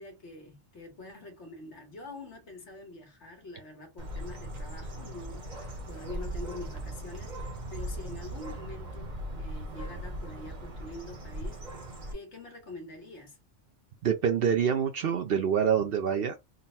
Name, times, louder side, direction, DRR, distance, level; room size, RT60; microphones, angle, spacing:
voice 1, 0.0-11.6 12.1-13.4, left 2 dB, 65° left, 1.4 m, -45 dB
Bird, 4.0-12.1, right 1 dB, 40° right, 1.1 m, -39 dB
voice 2, 14.0-16.4, right 7 dB, 60° right, 0.7 m, -26 dB
3.9 x 2.1 x 4.2 m
omnidirectional pair, 1.3 m